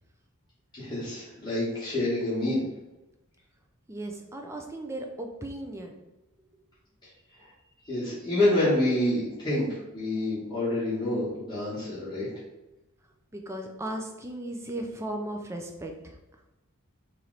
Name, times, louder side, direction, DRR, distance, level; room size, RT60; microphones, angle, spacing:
voice 1, 0.7-2.6 7.9-9.7 9.9-12.3, left 1 dB, 20° left, -12 dB, 1.2 m, -27 dB
voice 2, 3.9-6.0 11.4-11.5 13.3-16.2, right 1 dB, 10° right, 3 dB, 0.3 m, -36 dB
3.1 x 2.9 x 3.8 m, 0.97 s
head